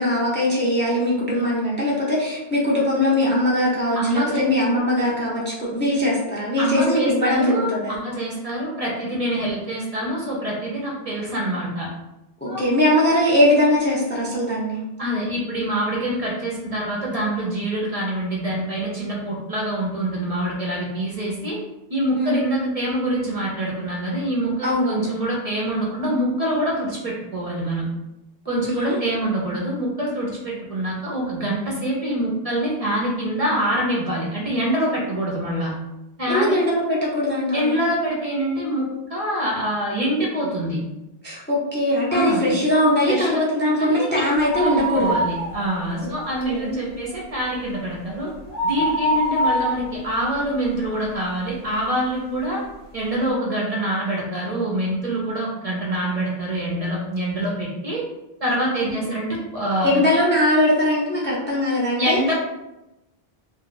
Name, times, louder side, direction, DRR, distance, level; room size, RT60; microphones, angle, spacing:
voice 1, 0.0-8.0 12.4-14.8 22.1-22.4 24.6-25.1 28.5-29.0 36.3-37.8 41.2-45.2 46.4-46.9 59.1-59.2 59.8-62.2, left 1 dB, 15° left, -5 dB, 0.5 m, -21 dB
voice 2, 3.9-4.4 6.6-11.9 12.5-12.6 15.0-21.6 21.9-27.9 28.5-35.7 36.2-36.5 37.5-40.8 42.1-42.5 43.1-43.4 43.8-44.2 44.6-48.3 48.6-52.6 52.9-58.0 58.4-59.9 62.0-62.3, right 1 dB, 40° right, -4 dB, 0.6 m, -25 dB
sound 1, 44.4-46.0 46.3-46.4 46.9-51.3 51.8-51.9 52.7-52.8 53.0-53.1, right 1 dB, 80° left, 1.1 m, -25 dB
2.6 x 2.3 x 3.8 m, 0.95 s
omnidirectional pair, 1.0 m